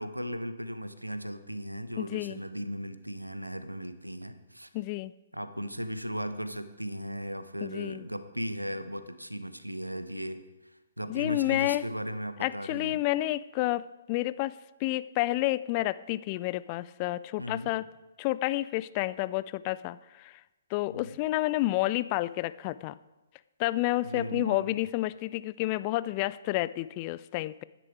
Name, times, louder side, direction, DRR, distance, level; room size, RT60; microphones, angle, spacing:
voice 1, 0.0-4.7 5.3-10.4 11.0-13.0 17.4-17.7 20.9-21.2 24.0-24.8, equal, 90° right, 11 dB, 0.8 m, -37 dB
voice 2, 2.0-2.4 4.7-5.1 7.6-8.0 11.1-11.9 12.4-17.9 18.2-20.4 20.7-23.0 23.6-27.6, left 17 dB, 30° left, 17 dB, 0.3 m, -30 dB
11.0 x 10.0 x 4.7 m, 1.1 s
figure-of-eight pair, 125°, 0 cm